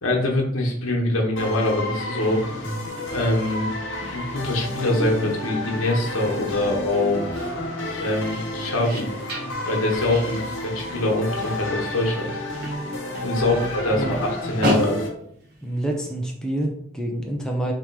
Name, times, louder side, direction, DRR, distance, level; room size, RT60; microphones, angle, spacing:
voice 1, 0.0-2.4 3.1-3.7 4.1-7.4 8.0-9.0 9.6-12.3 13.2-15.1, left 1 dB, 85° left, -1 dB, 1.2 m, -24 dB
sound 1, 1.4-15.1, left 1 dB, 65° left, 1.0 m, -31 dB
sound 2, 1.6-16.0, equal, 50° right, 0.9 m, -35 dB
voice 2, 13.5-14.1 15.6-17.7, right 1 dB, 5° left, 0 dB, 0.5 m, -27 dB
3.6 x 3.0 x 4.6 m, 0.69 s
head